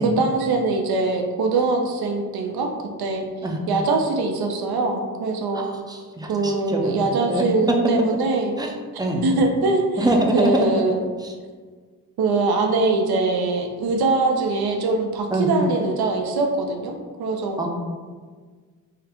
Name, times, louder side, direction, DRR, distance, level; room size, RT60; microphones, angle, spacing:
voice 1, 0.0-2.7 3.0-3.2 3.7-5.7 6.3-8.5 9.2-10.1 10.3-11.0 12.2-16.9 17.2-17.6, right 3 dB, 85° right, 2 dB, 0.5 m, -22 dB
voice 2, 5.5-7.0 7.3-7.4 8.6-8.7 9.0-9.2 10.0-10.7 11.2-11.3 15.3-15.5 17.6-17.7, right 1 dB, 10° right, 1 dB, 0.3 m, -24 dB
3.8 x 2.2 x 4.1 m, 1.5 s
wide cardioid pair, 150°, 36 cm